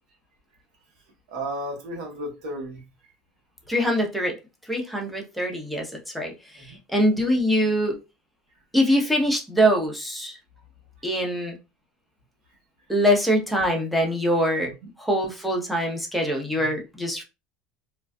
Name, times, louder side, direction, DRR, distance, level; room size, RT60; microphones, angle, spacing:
voice 1, 1.3-2.8 6.6-6.8 14.6-14.7 16.6-16.7, right 1 dB, 85° right, 1.1 m, -34 dB
voice 2, 3.7-4.4 4.7-8.0 8.7-10.4 11.0-11.6 12.9-14.7 15.0-17.2, equal, ahead, 0.8 m, -23 dB
2.5 x 2.3 x 2.2 m
supercardioid pair, 105°, 4 cm